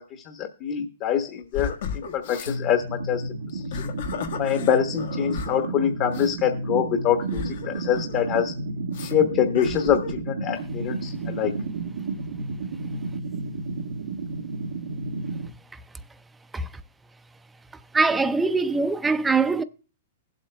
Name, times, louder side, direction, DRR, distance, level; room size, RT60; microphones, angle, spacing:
voice 1, 0.3-3.2 3.5-3.9 4.4-8.5 9.0-11.5, left 9 dB, 40° left, 1.1 m, -25 dB
sound 1, 1.5-2.6 3.5-5.7 6.1-6.3 7.3-8.4 8.9-9.1 9.5-10.2, left 6 dB, 70° left, 1.5 m, -35 dB
sound 2, 2.5-15.5, right 3 dB, 85° right, 1.0 m, -32 dB
voice 2, 17.9-19.6, right 4 dB, 10° right, 0.5 m, -22 dB
20.5 x 8.0 x 2.2 m
hypercardioid pair, 130°, 0 cm